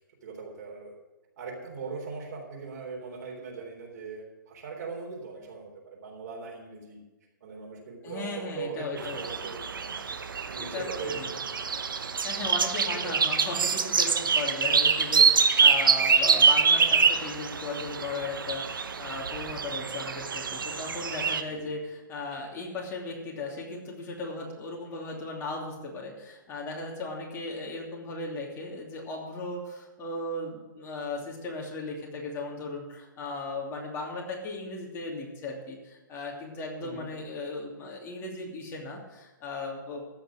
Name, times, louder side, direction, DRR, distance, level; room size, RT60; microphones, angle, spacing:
voice 1, 0.2-0.9 1.4-7.0 7.4-10.0 10.5-11.2 12.8-13.2 21.5-21.7 36.8-37.0, right 4 dB, 55° right, -1 dB, 3.7 m, -40 dB
voice 2, 8.0-9.2 10.6-11.3 12.2-40.0, left 2 dB, 20° left, -2 dB, 2.8 m, -37 dB
sound 1, 9.0-21.4, right 6 dB, 85° right, 1.0 m, -25 dB
14.5 x 6.0 x 7.6 m, 1.1 s
hypercardioid pair, 145°, 11 cm